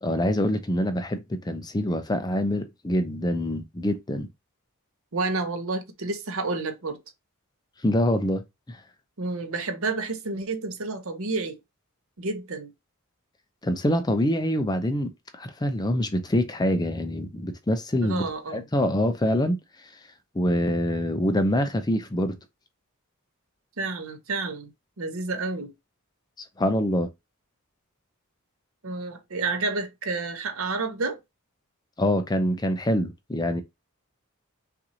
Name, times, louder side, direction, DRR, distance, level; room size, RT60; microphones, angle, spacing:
voice 1, 0.0-4.3 7.8-8.8 13.6-19.6 20.3-22.3 26.6-27.1 32.0-33.6, left 1 dB, 20° left, 0.5 m, -25 dB
voice 2, 5.1-7.0 9.2-11.6 12.2-12.7 18.0-18.7 23.8-24.7 25.0-25.7 28.8-31.2, right 3 dB, 65° right, 0.9 m, -30 dB
5.8 x 2.6 x 2.8 m
head